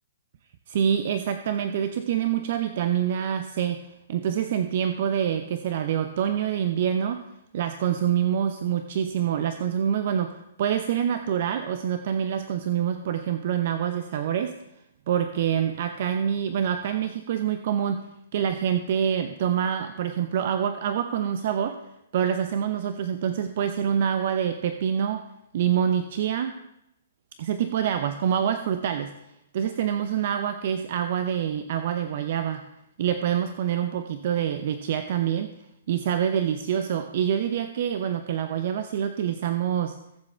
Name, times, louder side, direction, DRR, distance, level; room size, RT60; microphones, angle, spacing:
voice 1, 0.7-3.8 4.1-7.2 7.5-14.6 15.1-18.1 18.3-21.8 22.1-25.3 25.5-26.6 27.4-29.1 29.5-32.6 33.0-35.5 35.9-40.0, right 9 dB, 50° right, 9 dB, 0.7 m, -26 dB
22.0 x 7.3 x 3.4 m, 0.86 s
figure-of-eight pair, 120°, 0 cm